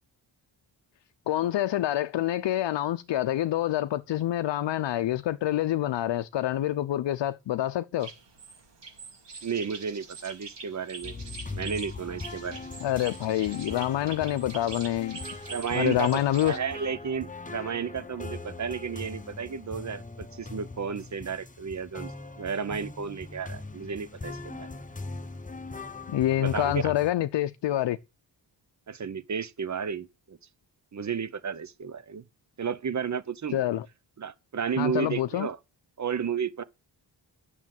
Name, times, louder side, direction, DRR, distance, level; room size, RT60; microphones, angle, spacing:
voice 1, 1.3-8.1 12.8-15.2 15.7-16.6 26.1-28.0 33.5-33.9 34.8-35.5, left 13 dB, 80° left, 0.6 m, -27 dB
sound 1, 8.0-16.6, right 4 dB, 70° right, 2.8 m, -44 dB
voice 2, 9.4-11.1 11.5-12.7 15.5-24.7 26.4-26.9 28.9-30.4 30.9-32.2 32.6-33.6 34.2-35.6 36.0-36.6, right 6 dB, 40° right, 0.8 m, -33 dB
sound 2, 11.0-27.1, left 3 dB, 20° left, 0.9 m, -41 dB
9.7 x 6.4 x 7.6 m
wide cardioid pair, 115°, 43 cm